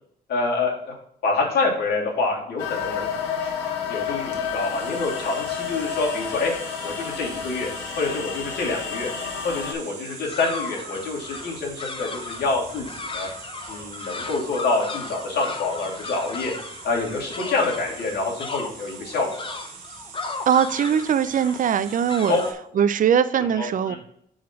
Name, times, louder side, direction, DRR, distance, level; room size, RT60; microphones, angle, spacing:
voice 1, 0.3-1.0 1.2-3.1 3.4-3.5 3.8-6.5 6.8-7.7 8.0-9.1 9.4-13.3 13.7-16.5 16.8-19.6 22.3-22.4 23.6-24.0, left 3 dB, 65° left, -2 dB, 2.7 m, -26 dB
sound 1, 2.6-9.7, left 7 dB, 90° left, 1.3 m, -30 dB
sound 2, 4.3-22.5, right 6 dB, 85° right, 1.6 m, -43 dB
sound 3, 10.1-22.5, left 3 dB, 30° left, 1.0 m, -36 dB
voice 2, 20.5-22.4 22.7-24.0, right 8 dB, 50° right, 14 dB, 0.6 m, -21 dB
6.1 x 4.1 x 5.9 m, 0.70 s
cardioid pair, 80°, 18 cm